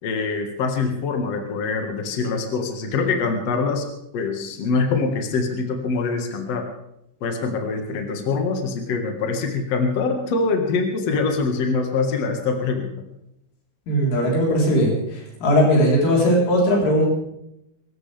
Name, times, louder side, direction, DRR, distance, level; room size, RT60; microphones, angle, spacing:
voice 1, 0.0-3.9 4.1-6.7 7.2-12.9, left 4 dB, 55° left, 3 dB, 1.8 m, -24 dB
voice 2, 13.9-17.1, equal, 75° left, -3 dB, 6.7 m, -19 dB
25.0 x 14.5 x 3.5 m, 0.80 s
omnidirectional pair, 5.7 m